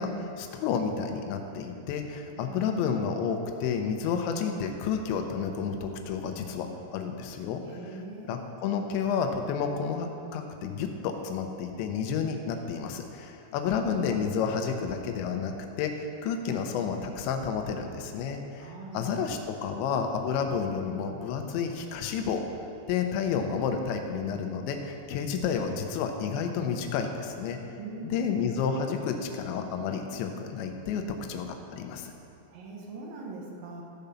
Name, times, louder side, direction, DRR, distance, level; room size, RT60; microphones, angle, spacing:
voice 1, 0.0-7.6 8.2-22.4 22.9-27.6 28.0-32.1, left 6 dB, 85° left, 4 dB, 3.1 m, -30 dB
voice 2, 2.3-2.9 7.6-8.6 18.6-19.0 27.8-28.3 32.5-33.8, right 3 dB, 65° right, -1 dB, 2.6 m, -42 dB
13.5 x 5.3 x 7.0 m, 2.6 s
omnidirectional pair, 5.3 m